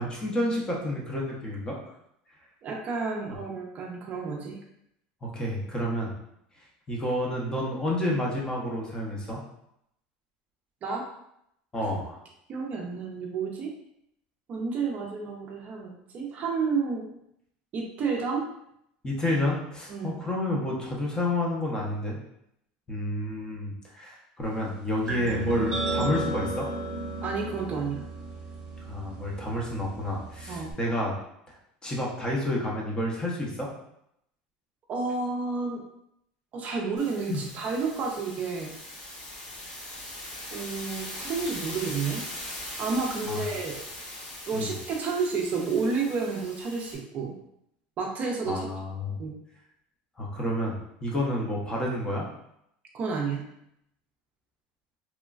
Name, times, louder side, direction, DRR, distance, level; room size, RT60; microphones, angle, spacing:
voice 1, 0.0-1.8 5.2-6.1 6.9-9.4 11.7-12.2 19.0-22.2 22.9-26.7 28.9-31.1 31.5-31.6 31.8-33.7 37.3-37.4 43.3-43.5 44.5-44.7 48.5-49.2 50.2-50.8 51.0-52.3, left 1 dB, 20° left, -3 dB, 0.6 m, -30 dB
voice 2, 2.6-4.6 10.8-11.0 12.5-13.7 14.5-17.1 17.7-18.5 19.9-20.2 27.2-28.0 30.5-30.7 34.9-35.8 36.5-38.7 40.5-42.2 42.8-43.8 44.5-47.3 48.0-48.7 49.2-49.4 52.9-53.4, right 4 dB, 35° right, 0 dB, 0.4 m, -30 dB
sound 1, 25.1-30.7, right 2 dB, 15° right, 0.9 m, -34 dB
sound 2, 37.0-47.0, left 1 dB, 90° left, 1.3 m, -40 dB
3.0 x 2.1 x 2.4 m, 0.76 s
supercardioid pair, 130°, 4 cm